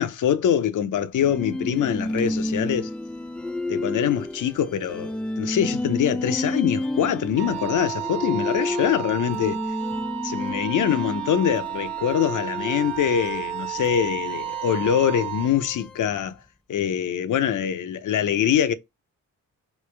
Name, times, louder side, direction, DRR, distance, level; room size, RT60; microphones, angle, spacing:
voice 1, 0.0-2.9 3.7-9.6 10.2-16.4 16.7-18.7, left 9 dB, 60° left, 0.6 m, -24 dB
sound 1, 1.2-16.3, left 1 dB, 5° left, 0.3 m, -31 dB
Wind instrument woodwind instrument, 7.4-15.5, right 16 dB, 80° right, 1.2 m, -32 dB
3.2 x 2.8 x 3.2 m
cardioid pair, 75°, 35 cm